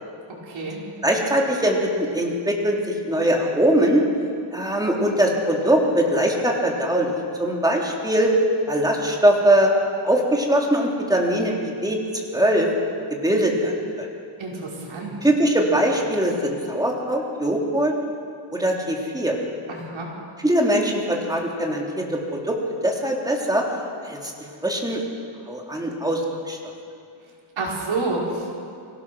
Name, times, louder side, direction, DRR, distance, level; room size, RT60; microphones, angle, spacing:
voice 1, 0.5-0.8 14.4-15.2 19.7-20.1 27.6-28.5, right 3 dB, 65° right, -3 dB, 5.6 m, -28 dB
voice 2, 1.0-2.8 3.1-4.0 4.5-8.3 8.7-9.7 10.0-12.0 12.3-12.7 13.2-14.1 15.2-17.9 18.5-19.3 20.4-22.6 22.8-23.6 24.0-24.2 24.6-25.0 25.5-26.2 26.5-26.6, right 1 dB, 10° right, -1 dB, 3.4 m, -21 dB
24.0 x 17.5 x 6.3 m, 2.4 s
cardioid pair, 105°, 50 cm